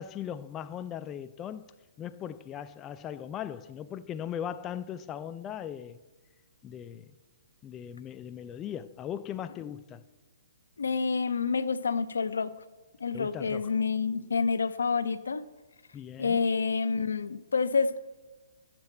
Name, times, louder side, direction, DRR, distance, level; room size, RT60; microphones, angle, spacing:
voice 1, 0.0-1.6 2.0-6.0 6.6-7.1 7.6-10.0 13.1-13.7 15.9-16.4, left 9 dB, 20° left, 0.3 m, -38 dB
voice 2, 10.8-12.5 13.0-15.4 16.2-18.0, left 5 dB, 85° left, 0.5 m, -28 dB
10.5 x 7.5 x 4.4 m
hypercardioid pair, 145°, 0 cm